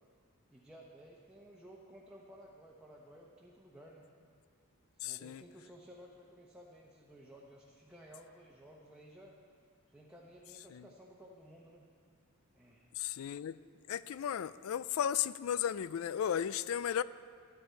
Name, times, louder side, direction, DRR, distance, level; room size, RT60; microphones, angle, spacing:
voice 1, 0.5-4.0 5.0-9.3 9.9-11.9 12.5-13.0, equal, 5° right, -4 dB, 0.9 m, -55 dB
voice 2, 5.0-5.4 10.7-10.9 13.0-13.6 13.9-17.0, left 9 dB, 70° left, 17 dB, 0.3 m, -35 dB
13.5 x 9.5 x 4.5 m, 2.1 s
head